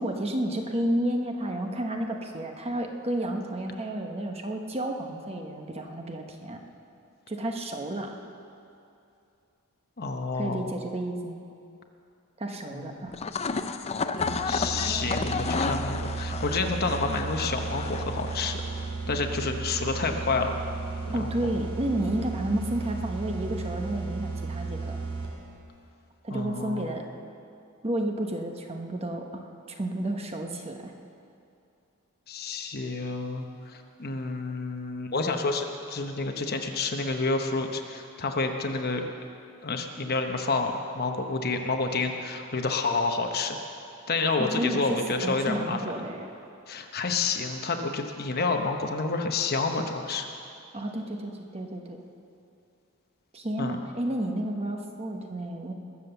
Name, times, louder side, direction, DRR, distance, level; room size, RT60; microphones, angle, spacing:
voice 1, 0.0-6.6 7.3-8.1 10.3-11.4 12.4-13.2 21.1-25.0 26.2-27.0 27.8-30.9 44.4-46.3 50.7-52.0 53.3-55.7, right 1 dB, 25° right, 3 dB, 1.1 m, -31 dB
voice 2, 10.0-10.6 12.7-12.9 14.5-18.6 19.1-20.5 21.1-21.3 26.3-27.0 32.3-39.0 39.6-43.6 44.1-45.8 46.7-50.3 53.6-53.8, left 3 dB, 45° left, 4 dB, 1.0 m, -29 dB
sound 1, 13.1-18.9, left 4 dB, 30° left, 0.5 m, -32 dB
sound 2, 14.2-25.6, right 3 dB, 80° right, 3.2 m, -34 dB
21.0 x 7.5 x 6.9 m, 2.6 s
head